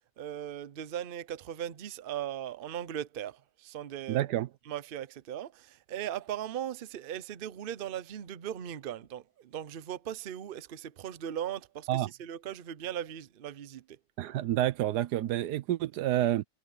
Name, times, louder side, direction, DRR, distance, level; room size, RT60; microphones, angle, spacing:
voice 1, 0.2-4.3 4.7-14.0, right 10 dB, 50° right, 0.7 m, -38 dB
voice 2, 4.1-4.5 11.9-12.1 14.2-16.4, right 13 dB, 85° right, 1.3 m, -29 dB
omnidirectional pair, 1.7 m